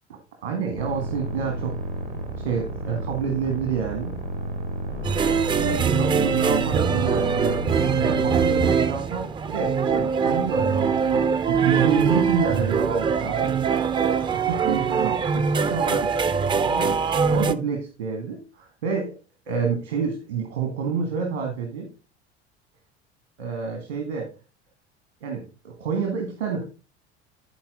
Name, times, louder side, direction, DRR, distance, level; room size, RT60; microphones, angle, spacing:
voice 1, 0.1-1.7 2.4-4.2 5.6-13.5 14.3-16.1 16.6-17.0 17.3-19.2 19.5-21.9 23.4-24.3 25.2-26.6, right 6 dB, 75° right, 3 dB, 1.8 m, -28 dB
sound 1, 0.8-8.7, right 1 dB, 90° right, 2.2 m, -31 dB
sound 2, 5.0-17.5, right 6 dB, 15° right, 0.4 m, -23 dB
12.0 x 4.6 x 3.7 m, 0.32 s
figure-of-eight pair, 65°, 34 cm